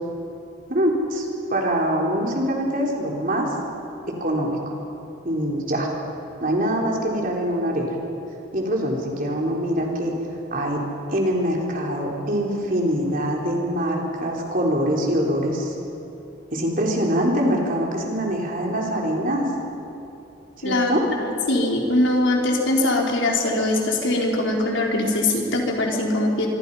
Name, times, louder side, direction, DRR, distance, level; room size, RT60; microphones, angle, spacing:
voice 1, 0.7-3.5 4.2-4.7 5.2-5.9 6.4-8.0 8.5-10.8 11.1-15.7 16.5-19.5 20.6-21.0, equal, 50° right, -1 dB, 4.2 m, -24 dB
voice 2, 21.5-26.5, left 2 dB, 85° left, 0 dB, 4.0 m, -21 dB
26.0 x 24.0 x 5.7 m, 2.8 s
head